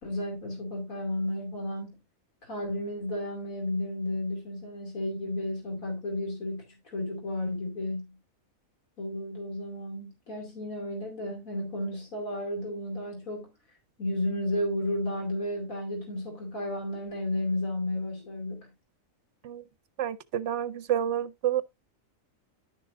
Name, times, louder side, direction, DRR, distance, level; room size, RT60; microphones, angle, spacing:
voice 1, 0.0-2.0 2.4-8.2 9.0-13.5 14.0-18.7, left 1 dB, 80° left, 3.0 m, -33 dB
voice 2, 20.0-21.6, right 10 dB, 65° right, 0.8 m, -29 dB
11.0 x 6.6 x 2.5 m
omnidirectional pair, 1.4 m